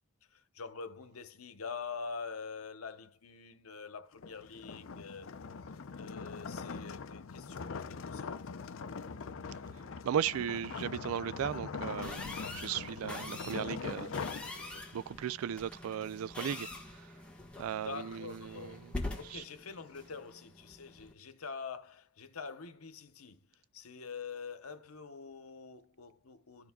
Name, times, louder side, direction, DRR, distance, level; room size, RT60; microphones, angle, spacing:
voice 1, 0.3-5.4 6.0-8.6 17.7-18.8 19.1-26.7, left 5 dB, 85° left, 0.9 m, -45 dB
sound 1, 4.1-15.1, left 5 dB, 65° left, 0.6 m, -42 dB
voice 2, 10.0-12.2 12.5-14.1 14.9-16.7 17.6-18.7 19.3-19.4, right 9 dB, 75° right, 0.3 m, -36 dB
sound 2, 12.0-21.1, left 2 dB, 5° left, 1.4 m, -45 dB
13.5 x 4.6 x 2.3 m
head